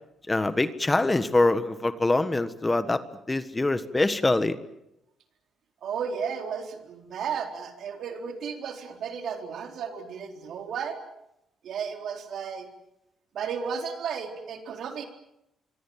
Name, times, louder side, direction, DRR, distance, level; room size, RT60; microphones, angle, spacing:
voice 1, 0.3-3.0 3.3-4.6, left 2 dB, 20° left, 12 dB, 1.5 m, -24 dB
voice 2, 5.8-11.0 11.6-12.7 13.3-15.1, right 6 dB, 70° right, 4 dB, 4.1 m, -34 dB
26.0 x 24.0 x 7.4 m, 0.86 s
cardioid pair, 90°, 0 cm